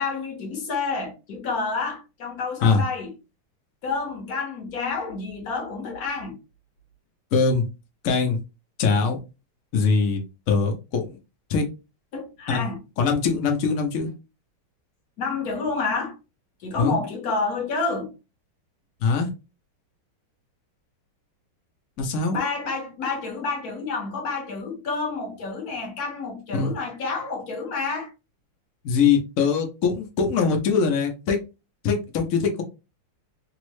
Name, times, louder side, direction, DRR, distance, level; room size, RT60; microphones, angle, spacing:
voice 1, 0.0-3.1 3.8-6.4 12.1-12.8 15.2-16.2 16.6-18.1 22.3-28.1, left 4 dB, 55° left, 1.2 m, -29 dB
voice 2, 7.3-7.6 8.0-8.4 8.8-9.2 9.7-10.2 10.5-11.2 11.5-11.7 12.5-12.7 13.0-14.1 16.8-17.0 19.0-19.3 22.0-22.4 26.5-26.7 28.8-31.4 31.8-32.6, left 5 dB, 85° left, 0.7 m, -22 dB
3.5 x 2.0 x 3.1 m
omnidirectional pair, 2.3 m